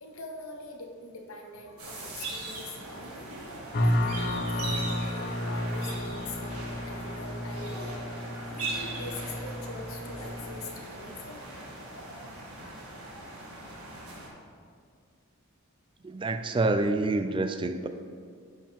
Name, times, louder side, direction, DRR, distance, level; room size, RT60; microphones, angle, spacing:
voice 1, 0.0-3.3 3.8-8.0 8.4-11.4, left 2 dB, 70° left, 2 dB, 1.0 m, -43 dB
sound 1, 1.8-14.3, right 2 dB, 85° right, 1.8 m, -40 dB
sound 2, 3.7-10.6, left 1 dB, 40° left, 0.6 m, -32 dB
voice 2, 16.0-17.9, right 2 dB, 20° right, 8 dB, 0.3 m, -27 dB
10.5 x 5.5 x 3.5 m, 2.2 s
head